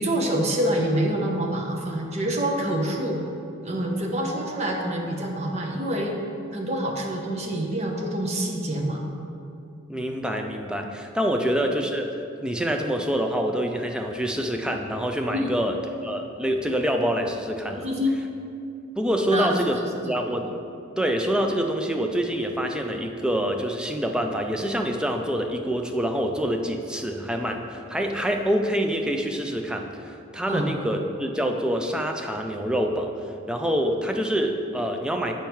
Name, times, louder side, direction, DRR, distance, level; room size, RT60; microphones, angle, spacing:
voice 1, 0.0-3.2 3.6-6.2 6.5-9.0 15.3-15.5 17.7-18.2 19.3-19.9 30.5-30.7, right 1 dB, 30° right, 0 dB, 0.8 m, -26 dB
voice 2, 9.9-12.1 12.4-15.8 16.0-17.9 19.0-19.8 20.1-20.6 21.0-33.1 33.5-35.3, equal, 5° right, 3 dB, 0.4 m, -26 dB
7.1 x 4.6 x 4.6 m, 2.6 s
head